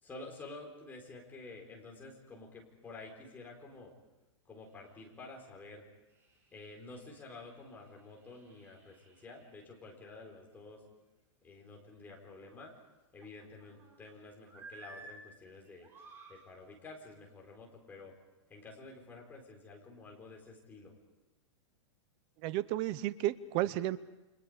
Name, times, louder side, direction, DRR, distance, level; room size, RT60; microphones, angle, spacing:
voice 1, 0.0-3.9 4.5-5.8 6.5-10.8 11.4-12.8 13.1-15.9 16.3-18.1 18.5-20.9, left 3 dB, 10° left, -1 dB, 4.3 m, -50 dB
sound 1, 4.7-5.1 5.7-5.8 6.1-9.5 12.0-12.7 13.1-14.1 14.5-15.2 15.6-16.4 17.1-17.3, right 3 dB, 15° right, 5.6 m, -56 dB
voice 2, 22.4-24.0, right 14 dB, 30° right, 17 dB, 0.8 m, -32 dB
29.5 x 25.5 x 5.1 m, 1.0 s
supercardioid pair, 160°, 16 cm